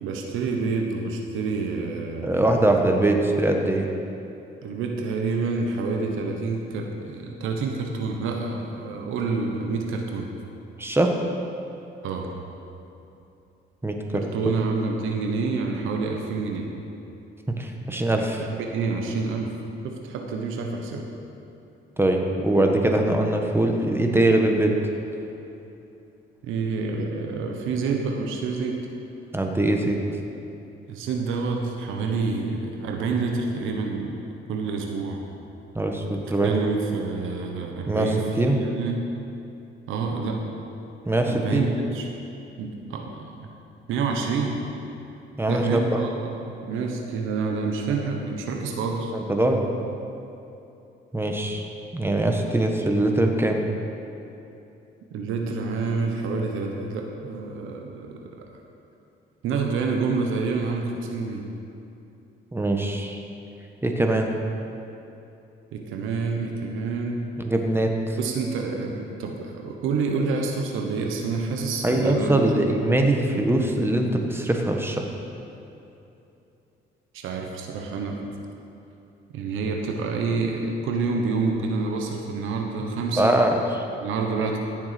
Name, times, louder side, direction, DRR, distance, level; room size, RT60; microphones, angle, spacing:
voice 1, 0.0-2.4 4.6-10.3 12.0-12.3 14.1-16.7 18.6-19.5 19.8-21.1 26.4-28.9 30.9-34.2 34.5-35.2 36.4-39.1 39.9-40.4 41.2-42.1 42.6-43.5 43.9-44.6 45.5-49.1 55.1-58.4 59.4-61.4 65.7-67.2 68.2-72.4 77.1-78.2 79.3-83.4 84.0-84.6, right 4 dB, 85° right, 2 dB, 1.2 m, -28 dB
voice 2, 2.2-3.9 10.8-11.2 13.8-14.2 17.6-18.5 22.0-24.7 29.3-30.0 35.7-36.6 37.9-38.1 38.4-38.6 41.0-41.7 45.4-45.8 49.1-49.7 51.1-51.6 51.9-53.6 62.5-63.2 63.8-64.3 67.4-68.2 71.8-75.1 83.2-83.8 84.4-84.5, right 1 dB, 10° right, 3 dB, 1.4 m, -22 dB
15.5 x 7.1 x 5.2 m, 2.8 s
cardioid pair, 90°, 20 cm